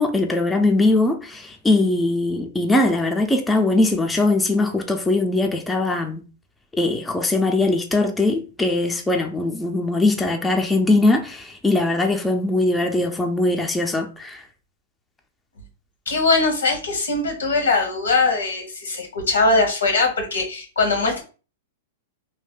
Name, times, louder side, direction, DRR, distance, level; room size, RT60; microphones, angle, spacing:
voice 1, 0.0-6.2 6.7-14.4, left 2 dB, 10° left, 0.4 m, -21 dB
voice 2, 16.1-21.2, left 3 dB, 90° left, 1.1 m, -21 dB
2.6 x 2.1 x 3.6 m
hypercardioid pair, 120°, 0 cm